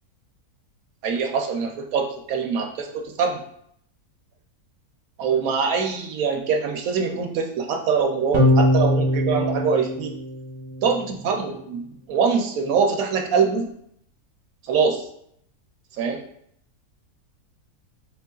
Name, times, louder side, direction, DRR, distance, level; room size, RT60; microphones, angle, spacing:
voice 1, 1.0-3.4 5.2-10.1 10.8-11.8 12.1-13.7 14.6-15.0 16.0-16.2, right 5 dB, 75° right, 3 dB, 1.0 m, -23 dB
sound 1, 8.3-10.9, left 1 dB, 30° right, 0.6 m, -21 dB
4.4 x 3.0 x 2.3 m, 0.70 s
omnidirectional pair, 1.6 m